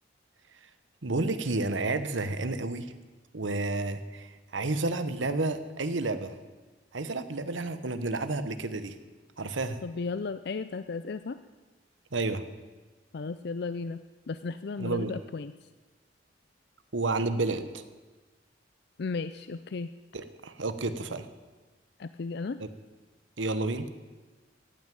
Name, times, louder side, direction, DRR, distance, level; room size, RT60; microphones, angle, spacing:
voice 1, 1.0-2.9 3.3-6.4 6.9-9.0 9.4-9.8 12.1-12.5 14.8-15.2 16.9-17.9 20.1-21.3 22.6-22.7 23.4-23.9, right 2 dB, 85° right, 11 dB, 1.1 m, -31 dB
voice 2, 9.8-11.4 13.1-15.7 19.0-19.9 22.0-22.6, left 4 dB, 60° left, 12 dB, 0.5 m, -35 dB
15.0 x 9.4 x 9.3 m, 1.3 s
head